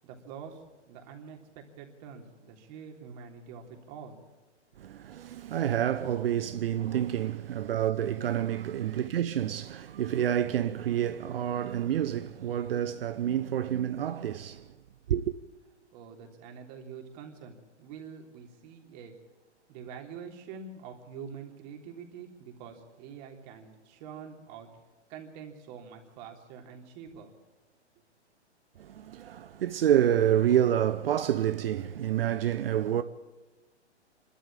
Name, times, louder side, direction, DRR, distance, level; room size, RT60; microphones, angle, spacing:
voice 1, 0.0-4.2 15.9-19.1 19.7-24.7 25.1-27.3, right 6 dB, 35° right, 3.4 m, -46 dB
voice 2, 4.8-14.6 15.1-15.3 28.8-33.0, right 10 dB, 55° right, 0.9 m, -28 dB
26.5 x 13.0 x 8.7 m
figure-of-eight pair, 120°, 35 cm